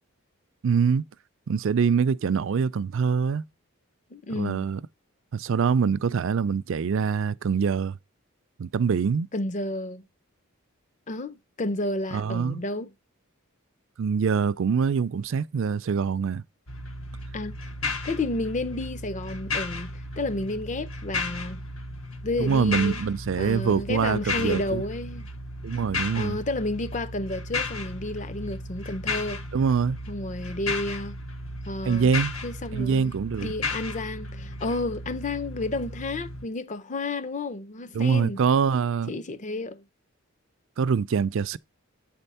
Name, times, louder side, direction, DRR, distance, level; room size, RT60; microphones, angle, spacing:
voice 1, 0.6-1.0 1.5-3.4 4.3-4.8 5.3-8.0 8.6-9.3 12.1-12.6 14.0-16.4 22.4-24.8 25.6-26.4 29.5-30.0 31.8-32.4 32.7-33.5 37.9-39.1 40.8-41.6, right 6 dB, 60° right, 0.4 m, -24 dB
voice 2, 4.1-4.7 9.3-10.0 11.1-12.9 17.3-17.6 18.0-21.6 22.2-23.0 23.3-25.3 26.1-29.4 30.1-31.2 31.7-32.1 32.4-33.1 33.4-38.4 39.1-39.8, left 2 dB, 35° left, 0.6 m, -31 dB
sound 1, 16.7-36.5, left 3 dB, 65° left, 1.1 m, -34 dB
8.9 x 4.4 x 5.5 m
head